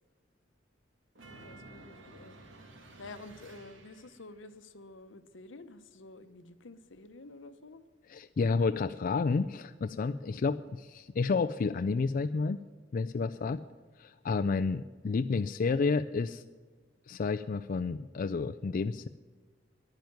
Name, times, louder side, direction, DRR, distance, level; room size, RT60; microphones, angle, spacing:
sound 1, 1.1-4.3, right 2 dB, 85° right, 1.9 m, -52 dB
voice 1, 1.3-2.4 3.0-7.8 13.3-13.6, left 2 dB, 80° left, 12 dB, 0.9 m, -50 dB
voice 2, 8.1-12.6 12.9-13.6 14.0-16.4 17.1-19.1, left 4 dB, 45° left, 9 dB, 0.4 m, -30 dB
10.5 x 9.2 x 9.4 m, 1.5 s
head